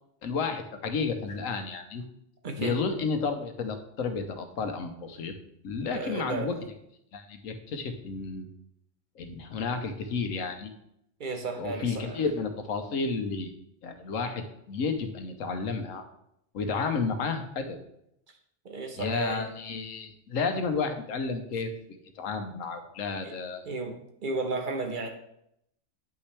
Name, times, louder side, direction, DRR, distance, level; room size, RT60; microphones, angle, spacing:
voice 1, 0.2-2.0 2.6-5.3 5.6-6.6 7.1-8.5 9.1-10.7 11.6-13.5 13.8-16.0 16.5-17.8 19.0-21.7 22.1-23.6, left 4 dB, 90° left, 7 dB, 1.3 m, -31 dB
voice 2, 2.4-2.7 5.8-6.5 11.2-12.2 18.6-19.5 23.2-23.3 23.6-23.9 24.2-25.1, right 3 dB, 40° right, 4 dB, 1.1 m, -33 dB
9.2 x 5.7 x 3.3 m, 0.77 s
omnidirectional pair, 1.3 m